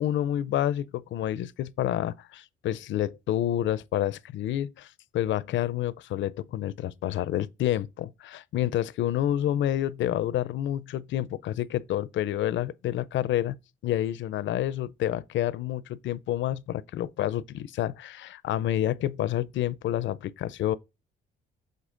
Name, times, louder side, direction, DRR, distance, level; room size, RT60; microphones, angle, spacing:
voice 1, 0.0-13.6 13.8-20.8, left 12 dB, 70° left, 0.5 m, -29 dB
7.3 x 4.0 x 3.8 m
cardioid pair, 90°, 20 cm